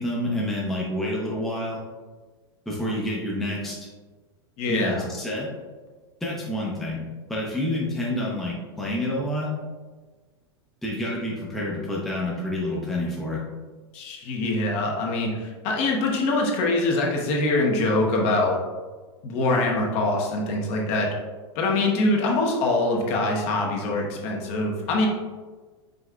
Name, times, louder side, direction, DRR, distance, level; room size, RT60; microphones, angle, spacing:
voice 1, 0.0-1.8 2.7-3.9 4.7-5.5 6.2-7.0 7.3-9.5 10.8-13.4, left 1 dB, ahead, -5 dB, 0.7 m, -28 dB
voice 2, 4.6-5.0 13.9-18.6 19.2-21.1 21.5-25.1, left 2 dB, 45° left, 0 dB, 1.0 m, -24 dB
5.1 x 3.4 x 2.4 m, 1.3 s
supercardioid pair, 140°, 14 cm